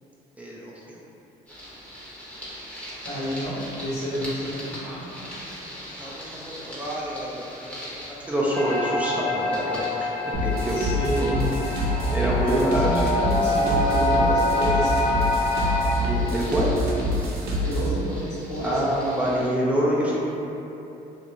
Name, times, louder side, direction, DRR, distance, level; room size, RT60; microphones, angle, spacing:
voice 1, 0.4-1.0 4.8-5.5 6.0-10.1 10.4-10.9 11.2-11.3 11.7-13.0 16.0-16.8 18.6-20.2, right 1 dB, 10° right, -7 dB, 0.4 m, -27 dB
sound 1, 1.5-19.5, equal, 10° left, 0.8 m, -42 dB
voice 2, 3.0-4.8 10.7-11.5 12.4-15.0 17.6-18.8, equal, 80° left, -9 dB, 1.1 m, -29 dB
sound 2, 8.5-15.9, left 2 dB, 45° left, 0.9 m, -25 dB
sound 3, 10.3-18.0, equal, 70° right, 0.6 m, -26 dB
2.5 x 2.5 x 2.9 m, 2.9 s
cardioid pair, 110°, 17 cm